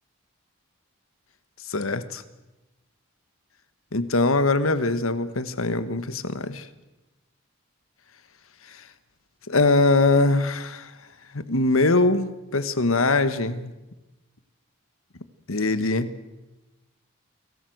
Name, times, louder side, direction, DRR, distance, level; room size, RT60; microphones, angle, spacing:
voice 1, 1.7-2.2 3.9-6.7 8.7-8.8 9.5-10.9 11.3-13.7 15.5-16.1, left 2 dB, 75° left, 13 dB, 1.5 m, -22 dB
29.0 x 19.0 x 8.0 m, 1.0 s
head